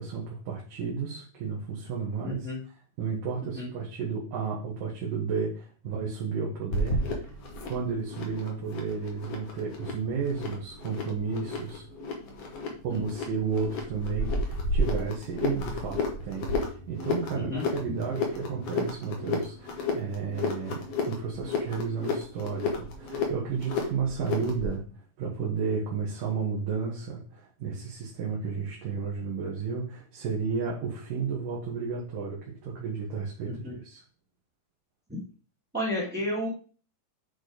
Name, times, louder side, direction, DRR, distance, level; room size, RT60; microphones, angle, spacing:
voice 1, 0.0-2.5 3.0-7.3 7.7-11.8 12.8-24.8 25.2-34.0, right 5 dB, 80° right, -4 dB, 3.2 m, -32 dB
voice 2, 2.2-2.6 3.4-3.7 12.9-13.0 17.3-17.9 33.5-33.8 35.7-36.5, left 1 dB, 5° right, -6 dB, 1.9 m, -32 dB
sound 1, 6.7-24.7, left 2 dB, 55° left, 2.4 m, -32 dB
8.5 x 4.6 x 5.0 m, 0.39 s
omnidirectional pair, 3.8 m